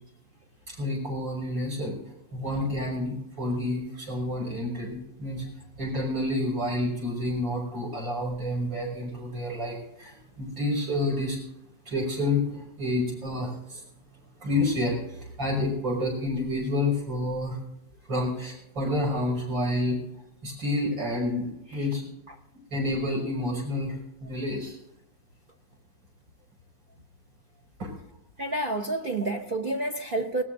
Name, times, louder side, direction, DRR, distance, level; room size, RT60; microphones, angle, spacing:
voice 1, 0.7-2.0 2.3-5.4 5.8-11.4 11.9-13.8 14.4-17.6 18.1-20.0 20.4-22.0 22.7-24.0 24.2-24.8 27.8-27.9, left 1 dB, 80° right, -2 dB, 7.1 m, -29 dB
voice 2, 28.4-30.4, right 2 dB, 55° right, 3 dB, 0.6 m, -29 dB
25.5 x 19.5 x 2.7 m, 0.81 s
omnidirectional pair, 2.0 m